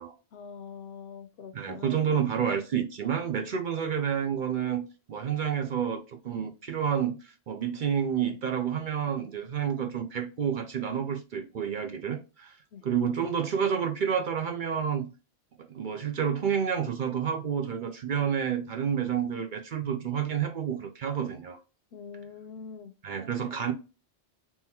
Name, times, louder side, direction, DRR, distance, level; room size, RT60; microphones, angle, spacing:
voice 1, 0.3-2.3 12.7-12.8 21.9-22.9, left 6 dB, 70° left, 0.8 m, -44 dB
voice 2, 1.5-12.6 12.8-15.1 15.7-21.6 23.0-23.7, right 8 dB, 55° right, 0.6 m, -29 dB
3.7 x 2.8 x 2.8 m
omnidirectional pair, 1.1 m